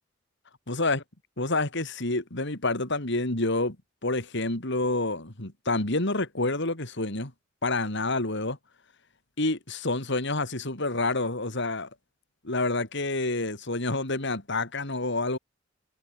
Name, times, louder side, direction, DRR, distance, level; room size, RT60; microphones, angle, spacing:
voice 1, 0.7-1.0 1.4-3.8 4.0-7.3 7.6-8.6 9.4-11.9 12.4-15.4, left 2 dB, 60° left, 3.8 m, -28 dB
head